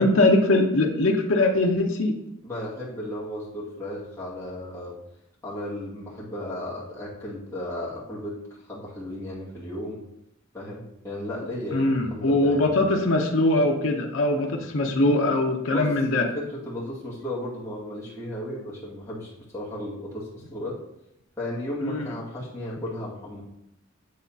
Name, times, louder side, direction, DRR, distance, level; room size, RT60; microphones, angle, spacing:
voice 1, 0.0-2.2 11.7-16.3 21.8-22.1, left 2 dB, 75° left, 1 dB, 0.7 m, -22 dB
voice 2, 2.4-5.0 5.4-10.0 10.5-12.7 14.5-14.6 15.7-16.0 16.3-20.8 21.4-23.4, left 1 dB, 15° left, -8 dB, 2.0 m, -35 dB
9.4 x 3.9 x 2.8 m, 0.85 s
head